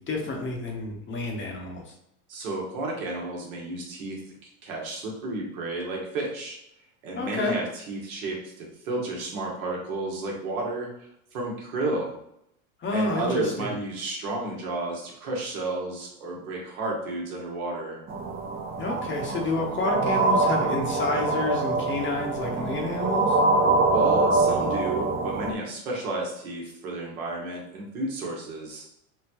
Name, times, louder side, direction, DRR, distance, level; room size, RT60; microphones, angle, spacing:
voice 1, 0.1-1.9 7.2-7.6 12.8-13.7 18.8-23.4, left 2 dB, 30° left, 1 dB, 0.8 m, -29 dB
voice 2, 2.3-4.2 4.6-6.6 7.0-10.9 11.3-12.1 12.9-18.0 23.9-28.9, right 2 dB, 75° right, -1 dB, 1.3 m, -32 dB
sound 1, 18.1-25.5, right 3 dB, 25° right, 0.3 m, -24 dB
3.7 x 2.3 x 2.8 m, 0.76 s
hypercardioid pair, 95°, 42 cm